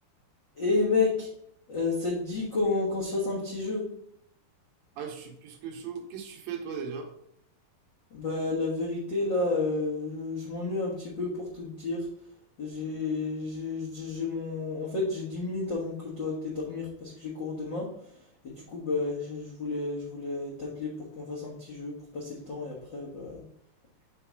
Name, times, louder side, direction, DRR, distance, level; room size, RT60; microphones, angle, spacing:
voice 1, 0.6-1.3 1.7-3.8 8.1-12.1 12.6-17.9 18.4-23.4, left 3 dB, 75° left, -5 dB, 1.0 m, -31 dB
voice 2, 5.0-7.1, right 6 dB, 80° right, 3 dB, 2.4 m, -38 dB
5.8 x 4.0 x 4.6 m, 0.71 s
omnidirectional pair, 4.3 m